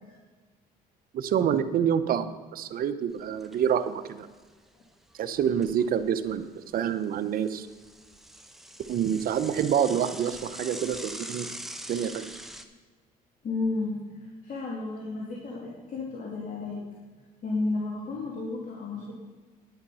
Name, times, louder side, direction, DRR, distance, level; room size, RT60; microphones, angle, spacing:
voice 1, 1.1-4.3 5.2-6.4 6.7-7.7 8.9-11.5 11.9-12.3, right 8 dB, 60° right, 10 dB, 0.9 m, -27 dB
Bicycle / Mechanisms, 3.1-3.7 4.1-4.2 4.4-4.5 5.2-6.4 6.7-12.6, right 1 dB, ahead, 0.9 m, -43 dB
voice 2, 13.4-14.0 14.4-16.8 17.4-19.1, left 3 dB, 50° left, -3 dB, 2.6 m, -32 dB
10.5 x 9.8 x 5.6 m, 1.4 s
cardioid pair, 110°, 17 cm